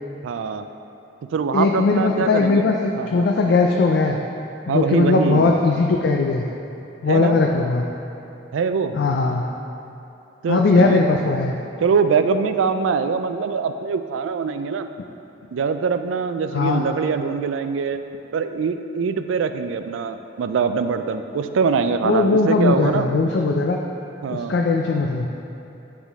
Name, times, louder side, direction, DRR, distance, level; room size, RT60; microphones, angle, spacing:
voice 1, 0.2-0.7 1.3-2.7 2.9-3.3 4.7-5.6 7.1-7.4 8.5-8.9 10.4-11.0 11.8-14.9 15.5-18.0 18.3-23.1 24.2-24.6, right 5 dB, 80° right, 9 dB, 0.3 m, -23 dB
voice 2, 1.5-4.2 4.7-6.4 7.0-7.8 8.9-9.5 10.5-11.6 16.5-16.8 22.0-23.8 24.3-25.3, left 3 dB, 60° left, 1 dB, 0.4 m, -19 dB
9.6 x 3.7 x 3.5 m, 2.9 s
head